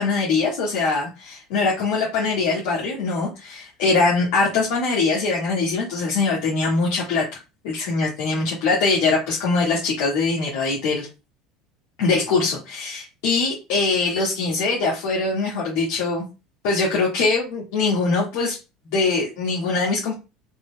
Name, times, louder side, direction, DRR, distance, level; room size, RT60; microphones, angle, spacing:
voice 1, 0.0-7.4 7.6-11.1 12.0-16.2 16.6-18.6 18.9-20.1, left 3 dB, 70° left, -4 dB, 1.7 m, -22 dB
5.2 x 3.8 x 2.2 m, 0.27 s
hypercardioid pair, 75°, 0 cm